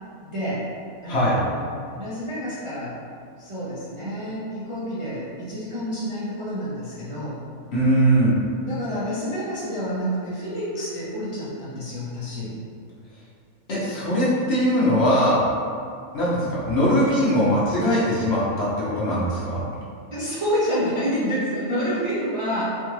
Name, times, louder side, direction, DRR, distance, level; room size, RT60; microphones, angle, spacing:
voice 1, 0.2-0.6 1.0-1.6 2.0-3.0 3.4-7.4 8.6-12.5 20.1-22.8, equal, 35° right, -11 dB, 0.6 m, -28 dB
voice 2, 1.1-1.4 7.7-8.4 13.7-15.4 16.1-19.6, equal, 55° left, -8 dB, 1.0 m, -21 dB
4.3 x 2.4 x 3.1 m, 2.3 s
omnidirectional pair, 1.5 m